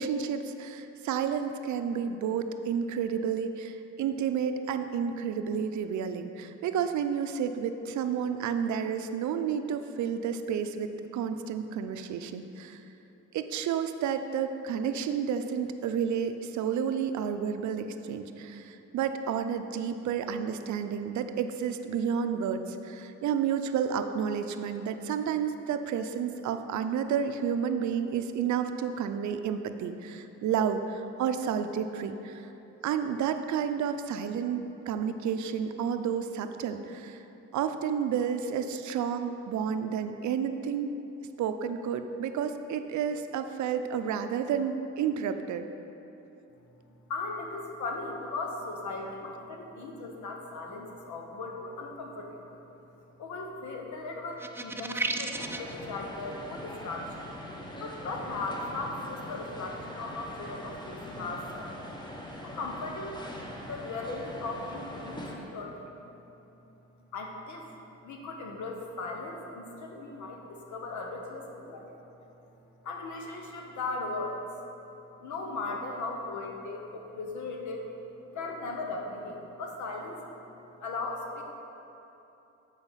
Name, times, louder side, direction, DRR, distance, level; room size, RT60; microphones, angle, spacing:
voice 1, 0.0-12.8 13.3-32.5 32.8-37.2 37.5-40.9 41.4-45.6, right 7 dB, 70° right, 8 dB, 0.6 m, -31 dB
voice 2, 47.1-52.6 53.2-57.3 57.8-61.8 62.4-63.2 63.7-65.9 67.1-67.7 68.0-72.3 72.8-74.4 75.2-77.9 78.3-80.6 80.8-81.4, left 3 dB, 75° left, 2 dB, 1.1 m, -38 dB
sound 1, 54.4-55.7, right 2 dB, 10° right, 0.3 m, -33 dB
sound 2, 55.3-65.4, left 1 dB, 15° left, 1.0 m, -42 dB
7.9 x 4.9 x 5.6 m, 3.0 s
cardioid pair, 90°, 30 cm